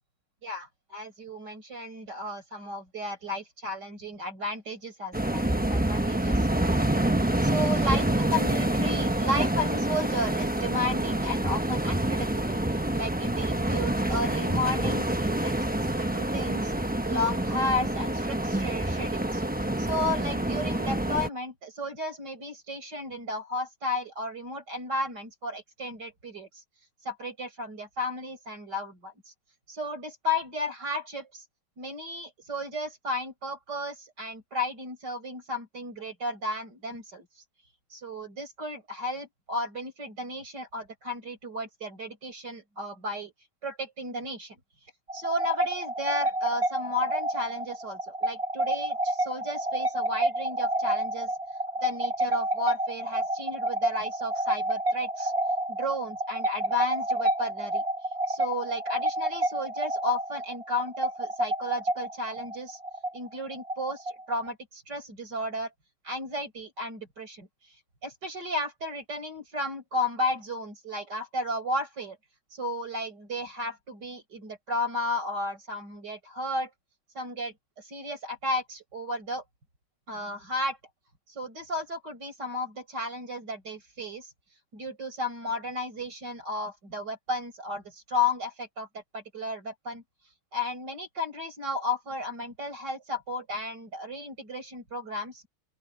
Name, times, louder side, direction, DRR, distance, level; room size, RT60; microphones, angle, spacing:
voice 1, 0.4-5.4 5.7-6.7 7.2-16.7 17.0-19.4 19.8-26.5 27.0-29.1 29.7-31.4 31.8-37.3 37.9-43.3 43.6-44.6 45.1-51.3 51.8-55.3 55.7-57.8 58.3-62.8 63.1-65.7 66.0-67.5 68.0-72.2 72.5-76.7 77.2-77.5 77.9-79.4 80.1-80.8 81.4-84.3 84.7-90.0 90.5-95.4, left 1 dB, 55° right, 7.2 m, -33 dB
sound 1, 5.1-21.3, right 1 dB, 10° right, 0.4 m, -27 dB
sound 2, 45.1-64.5, right 1 dB, 30° right, 5.6 m, -29 dB
open air
omnidirectional pair, 2.2 m